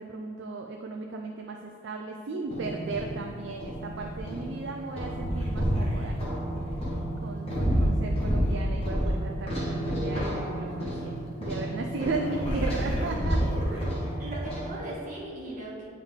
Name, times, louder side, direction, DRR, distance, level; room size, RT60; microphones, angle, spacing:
voice 1, 0.0-1.6 1.8-6.6 7.2-14.1, right 3 dB, 55° right, 2 dB, 0.4 m, -36 dB
sound 1, 2.5-14.7, equal, 30° left, 1.2 m, -29 dB
voice 2, 14.2-15.9, right 2 dB, 35° right, -6 dB, 1.7 m, -38 dB
9.6 x 3.7 x 3.6 m, 2.1 s
head